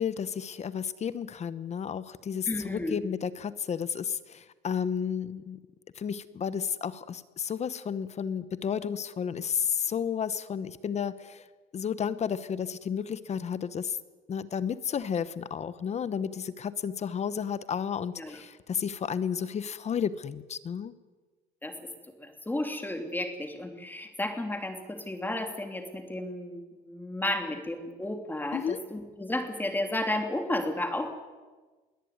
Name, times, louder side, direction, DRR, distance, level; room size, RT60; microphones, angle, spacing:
voice 1, 0.0-5.6 5.9-11.5 11.7-14.0 14.3-20.9 28.5-28.8, left 7 dB, 40° left, 15 dB, 1.0 m, -32 dB
voice 2, 2.5-3.0 18.2-18.4 21.6-21.7 22.2-31.1, left 1 dB, 10° left, 5 dB, 3.0 m, -33 dB
22.0 x 17.5 x 9.5 m, 1.3 s
cardioid pair, 110°, 17 cm